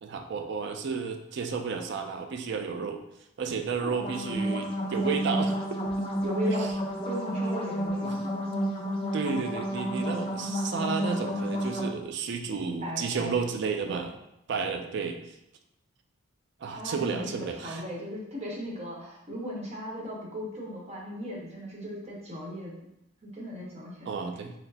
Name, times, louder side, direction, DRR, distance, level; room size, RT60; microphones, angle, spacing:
voice 1, 0.0-3.0 3.4-5.8 6.5-6.7 8.0-8.1 9.1-14.1 14.5-15.4 16.6-17.8 24.1-24.5, right 5 dB, 55° right, 5 dB, 0.4 m, -32 dB
sound 1, 3.9-11.9, equal, 25° left, 0.6 m, -30 dB
voice 2, 6.2-6.7 7.0-8.3 12.8-13.4 13.8-14.1 16.7-22.8 23.2-24.1, equal, 30° right, -4 dB, 0.9 m, -37 dB
5.8 x 2.0 x 2.7 m, 0.83 s
head